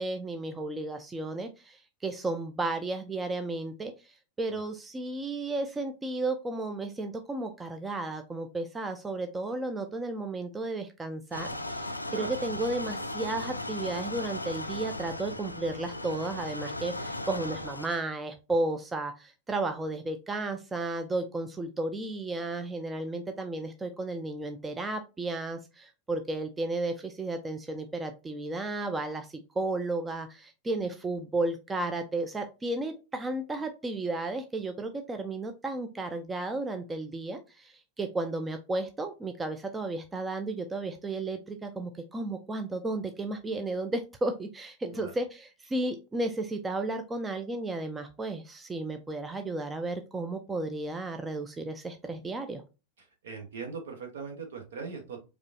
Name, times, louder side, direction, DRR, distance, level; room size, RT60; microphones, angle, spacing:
voice 1, 0.0-4.1 4.4-52.6, right 2 dB, 15° right, 7 dB, 0.4 m, -33 dB
sound 1, 11.3-18.0, left 1 dB, 85° left, 0.3 m, -37 dB
voice 2, 53.0-55.2, right 5 dB, 60° right, 5 dB, 1.0 m, -41 dB
4.8 x 2.3 x 2.6 m, 0.30 s
figure-of-eight pair, 90°, 0 cm